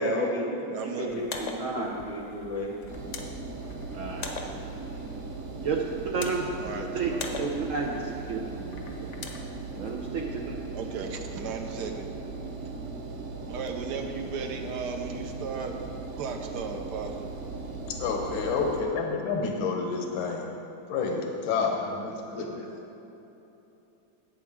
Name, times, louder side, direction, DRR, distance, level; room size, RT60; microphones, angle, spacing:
voice 1, 0.0-0.7 1.0-2.8, equal, 15° right, -2 dB, 0.5 m, -31 dB
voice 2, 0.7-1.5 6.6-7.7 10.7-12.1 13.5-15.8 16.1-17.3 18.5-18.9, right 5 dB, 65° right, 4 dB, 1.2 m, -36 dB
sound 1, 1.1-10.1, left 3 dB, 55° left, 0.8 m, -43 dB
voice 3, 1.6-2.0 3.9-4.3 5.6-5.8 6.0-6.5 6.9-7.1 7.4-9.2 9.8-10.6, right 5 dB, 85° right, 0 dB, 0.7 m, -31 dB
Engine, 2.9-18.8, right 3 dB, 50° right, 0.9 m, -38 dB
voice 4, 17.9-20.4 20.9-22.7, left 4 dB, 80° left, 1 dB, 1.7 m, -29 dB
11.5 x 8.4 x 3.6 m, 3.0 s
omnidirectional pair, 2.2 m